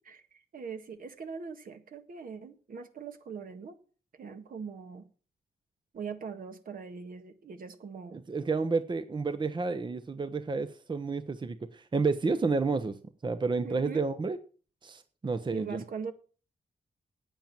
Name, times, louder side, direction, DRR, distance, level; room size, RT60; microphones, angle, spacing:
voice 1, 0.1-3.7 4.1-5.1 5.9-8.2 13.6-14.1 15.5-16.1, right 6 dB, 65° right, 8 dB, 1.6 m, -41 dB
voice 2, 8.3-13.0 13.2-14.4 14.8-15.8, right 4 dB, 30° right, 12 dB, 0.8 m, -30 dB
8.9 x 8.8 x 7.4 m, 0.39 s
cardioid pair, 95°, 16 cm